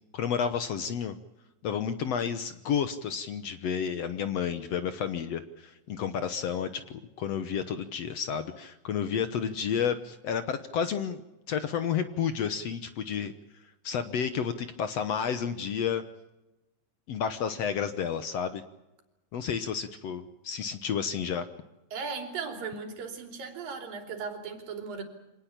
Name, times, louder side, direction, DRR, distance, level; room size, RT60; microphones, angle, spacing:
voice 1, 0.1-1.2 1.6-11.2 11.5-13.3 13.8-16.0 17.1-18.6 19.3-21.5, left 7 dB, 60° left, 11 dB, 1.9 m, -31 dB
voice 2, 21.9-25.0, right 5 dB, 85° right, 6 dB, 5.0 m, -37 dB
25.5 x 18.5 x 8.8 m, 0.96 s
omnidirectional pair, 3.9 m